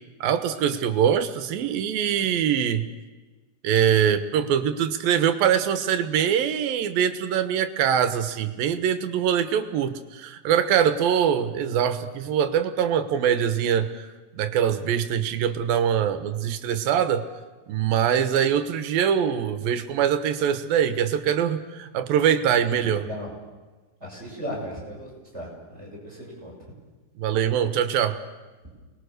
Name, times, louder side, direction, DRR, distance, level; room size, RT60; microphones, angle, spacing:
voice 1, 0.2-2.9 3.6-14.1 14.3-17.2 17.7-23.0 27.2-28.2, right 9 dB, 85° right, 10 dB, 3.0 m, -23 dB
voice 2, 22.7-23.3 24.0-26.5, equal, 15° right, -3 dB, 6.5 m, -36 dB
29.0 x 21.0 x 6.7 m, 1.3 s
omnidirectional pair, 4.1 m